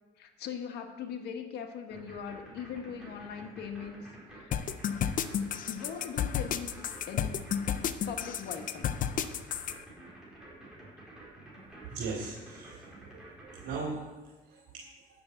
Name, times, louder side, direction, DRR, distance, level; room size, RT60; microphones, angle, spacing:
voice 1, 0.2-4.1 4.3-4.6 5.7-6.7 7.1-7.5 8.0-8.9, left 7 dB, 75° left, 5 dB, 1.5 m, -40 dB
sound 1, 1.9-13.8, right 1 dB, 5° right, 4.7 m, -50 dB
sound 2, 4.5-9.8, left 9 dB, 55° left, 0.7 m, -31 dB
voice 2, 11.9-12.9 13.2-14.1 14.5-14.9, right 4 dB, 80° right, -4 dB, 2.7 m, -38 dB
10.5 x 7.0 x 8.1 m, 1.2 s
cardioid pair, 110°, 17 cm